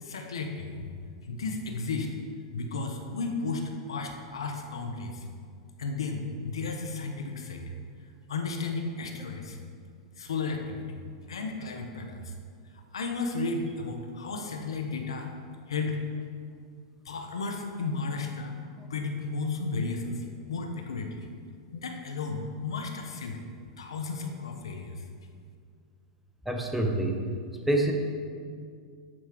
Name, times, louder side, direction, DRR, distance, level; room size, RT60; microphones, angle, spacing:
voice 1, 0.0-0.8 1.3-2.1 2.5-5.2 5.8-7.7 8.3-9.6 10.2-10.9 11.3-12.3 12.9-15.3 15.7-16.0 17.0-18.5 18.9-21.2 21.7-23.4 23.8-24.9, left 3 dB, 85° left, 4 dB, 1.0 m, -33 dB
voice 2, 26.4-27.2 27.7-27.9, right 1 dB, 5° right, 2 dB, 1.1 m, -26 dB
9.2 x 4.8 x 6.0 m, 2.2 s
hypercardioid pair, 110°, 3 cm